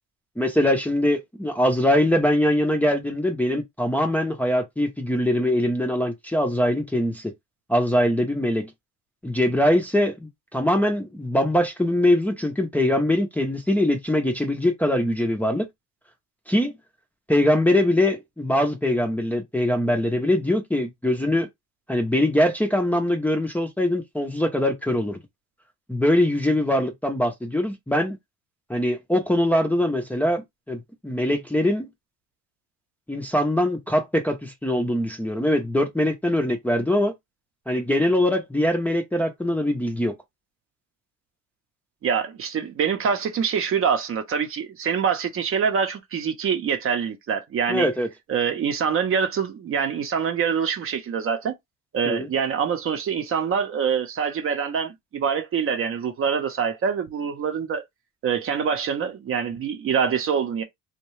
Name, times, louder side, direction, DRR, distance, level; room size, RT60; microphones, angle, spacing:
voice 1, 0.4-7.3 7.7-8.7 9.2-15.7 16.5-16.7 17.3-21.5 21.9-25.2 25.9-28.2 28.7-31.9 33.1-37.1 37.7-40.1 47.7-48.1 52.0-52.3, left 1 dB, 5° left, 0.5 m, -22 dB
voice 2, 42.0-47.9 48.3-51.5 51.9-57.8 58.2-60.6, right 7 dB, 40° right, 0.7 m, -25 dB
2.6 x 2.2 x 3.1 m
cardioid pair, 105°, 33 cm